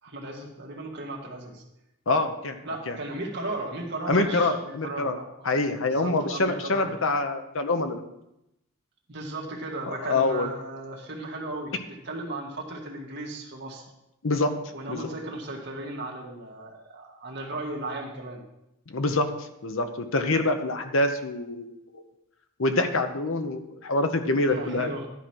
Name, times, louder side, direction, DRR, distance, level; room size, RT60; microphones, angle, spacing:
voice 1, 0.0-1.6 2.6-5.3 5.9-6.9 9.1-13.9 14.7-18.4 24.2-25.1, right 2 dB, 50° right, -1 dB, 1.9 m, -36 dB
voice 2, 2.1-2.6 2.9-3.0 4.1-5.2 5.4-8.0 10.0-10.5 14.2-14.5 14.9-15.1 18.9-22.0 22.6-24.9, left 2 dB, 65° left, 7 dB, 0.9 m, -26 dB
11.5 x 5.1 x 6.1 m, 0.85 s
head